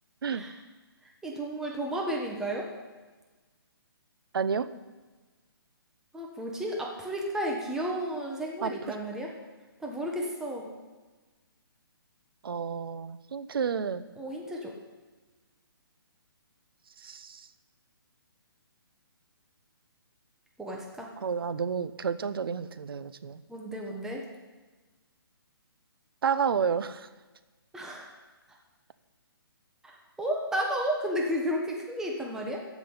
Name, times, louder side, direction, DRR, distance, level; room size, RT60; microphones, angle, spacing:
voice 1, 1.2-2.7 6.1-9.3 9.8-10.7 14.2-14.7 20.6-21.1 23.5-24.3 27.7-28.1 30.2-32.6, equal, 5° right, -1 dB, 1.4 m, -32 dB
voice 2, 4.3-4.7 8.6-9.0 12.4-14.0 17.0-17.5 21.2-23.4 26.2-27.1, right 6 dB, 65° right, 13 dB, 0.9 m, -30 dB
14.5 x 6.2 x 8.9 m, 1.3 s
hypercardioid pair, 155°, 13 cm